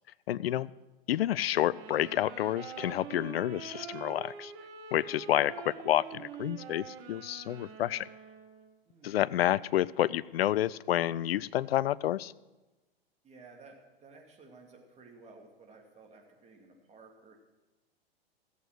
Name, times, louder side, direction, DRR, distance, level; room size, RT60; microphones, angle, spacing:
voice 1, 0.3-0.7 1.1-4.5 4.9-8.1 9.0-12.3, left 13 dB, 75° left, 20 dB, 0.5 m, -29 dB
sound 1, 1.7-8.7, right 7 dB, 40° right, 1.6 m, -45 dB
voice 2, 8.9-9.2 13.2-17.4, right 3 dB, 20° right, 1 dB, 2.6 m, -55 dB
15.0 x 8.2 x 6.2 m, 1.1 s
hypercardioid pair, 105°, 31 cm